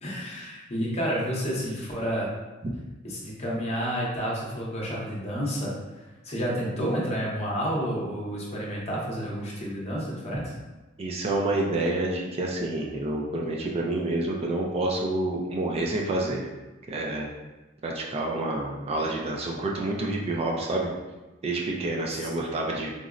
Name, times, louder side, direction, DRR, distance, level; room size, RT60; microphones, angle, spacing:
voice 1, 0.0-2.3 3.0-10.5 22.1-22.3, equal, 30° left, -4 dB, 0.7 m, -30 dB
voice 2, 11.0-16.5 16.9-17.3 17.8-20.9 21.4-22.9, right 2 dB, 30° right, -1 dB, 0.3 m, -28 dB
3.9 x 2.0 x 2.4 m, 1.1 s
head